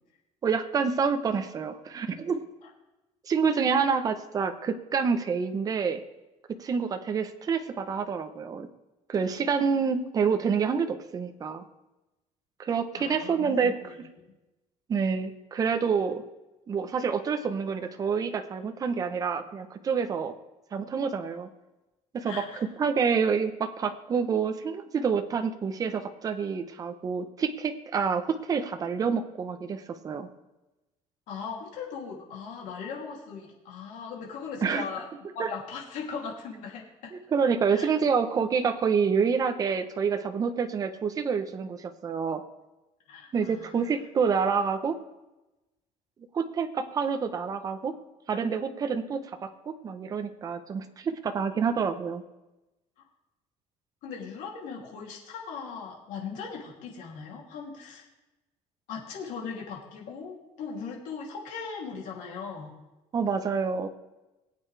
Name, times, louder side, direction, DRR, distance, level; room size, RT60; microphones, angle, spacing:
voice 1, 0.4-2.4 3.3-6.0 6.6-8.7 9.1-11.6 12.6-13.9 14.9-16.2 16.7-20.3 20.7-21.5 22.1-30.3 34.6-34.8 35.4-35.5 37.3-42.4 43.3-45.0 46.3-47.9 48.3-52.2 63.1-63.9, right 6 dB, 30° right, 7 dB, 0.9 m, -27 dB
voice 2, 13.0-14.1 22.2-22.7 31.3-35.1 35.3-37.1 37.7-37.9 43.1-43.9 53.0-53.1 54.0-58.0 58.9-62.7, left 5 dB, 75° left, -2 dB, 2.9 m, -39 dB
21.0 x 8.9 x 3.4 m, 1.0 s
cardioid pair, 170°, 13 cm